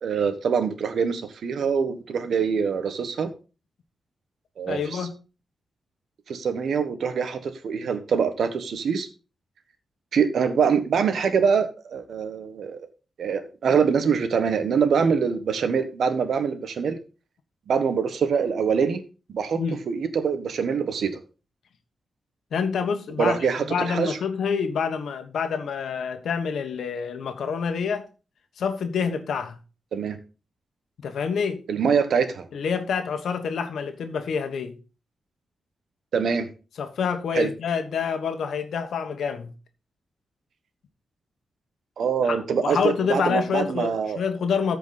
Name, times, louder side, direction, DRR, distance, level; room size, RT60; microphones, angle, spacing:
voice 1, 0.0-3.3 4.6-5.1 6.3-9.1 10.1-12.9 13.2-17.0 17.7-19.0 19.3-21.1 23.2-24.2 29.9-30.1 31.7-32.5 36.1-36.5 37.3-37.5 42.0-44.2, right 6 dB, 75° right, 1.3 m, -24 dB
voice 2, 4.7-5.1 19.5-19.8 22.5-23.4 23.7-28.1 28.6-29.6 31.0-31.6 32.5-34.8 36.8-39.5 42.2-44.8, left 6 dB, 85° left, 1.3 m, -27 dB
13.5 x 5.1 x 4.0 m
wide cardioid pair, 105°, 0 cm